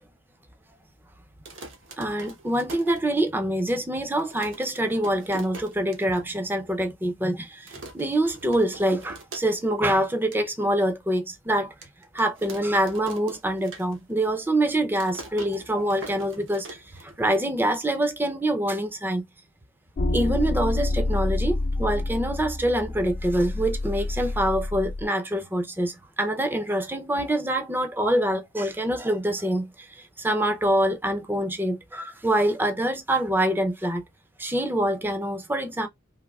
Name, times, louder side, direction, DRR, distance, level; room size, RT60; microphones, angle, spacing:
sound 1, 1.3-3.6 3.9-4.0 4.2-6.2 6.6-6.7 6.9-7.3 7.7-9.8 10.1-10.4 10.9-11.0 11.8-14.3 14.5-17.5, right 2 dB, 75° right, 1.0 m, -43 dB
voice 1, 2.0-7.7 7.9-11.7 12.1-16.8 17.2-19.2 20.1-29.7 30.2-34.0 34.4-35.9, right 1 dB, 10° right, 0.5 m, -25 dB
sound 2, 20.0-25.1, left 2 dB, 40° left, 0.5 m, -28 dB
3.4 x 2.6 x 2.3 m
head